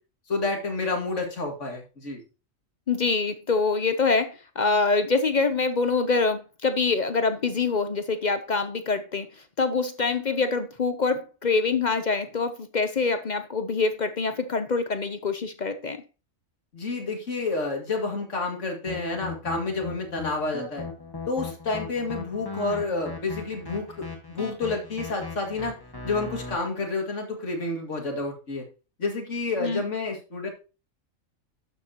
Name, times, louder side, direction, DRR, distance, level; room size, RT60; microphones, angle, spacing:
voice 1, 0.3-2.2 16.7-20.9 21.3-25.7 26.0-28.6 29.0-30.5, left 3 dB, 60° left, 2.6 m, -29 dB
voice 2, 2.9-9.3 9.6-16.0 29.6-29.8, left 4 dB, 45° left, 0.6 m, -25 dB
sound 1, 18.9-26.5, left 3 dB, 15° left, 1.7 m, -38 dB
12.0 x 7.3 x 2.9 m
omnidirectional pair, 1.4 m